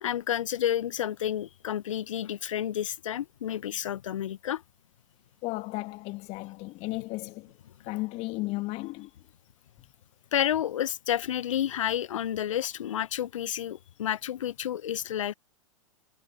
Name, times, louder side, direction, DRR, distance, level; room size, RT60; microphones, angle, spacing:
voice 1, 0.0-4.6 10.3-15.3, left 11 dB, 60° left, 1.2 m, -30 dB
voice 2, 5.4-7.5 7.8-9.1, left 22 dB, 35° left, 2.1 m, -34 dB
figure-of-eight pair, 100°, 18 cm